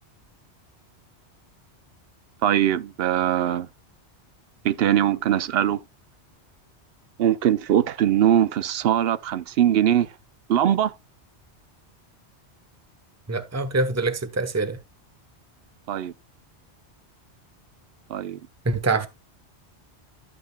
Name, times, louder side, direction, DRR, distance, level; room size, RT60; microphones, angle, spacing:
voice 1, 2.4-3.7 4.6-5.8 7.2-10.1 10.5-10.9 15.9-16.1 18.1-18.4, right 10 dB, 65° right, 0.8 m, -21 dB
voice 2, 13.3-14.8 18.6-19.1, right 3 dB, 15° right, 0.8 m, -24 dB
12.0 x 8.5 x 2.2 m
omnidirectional pair, 1.2 m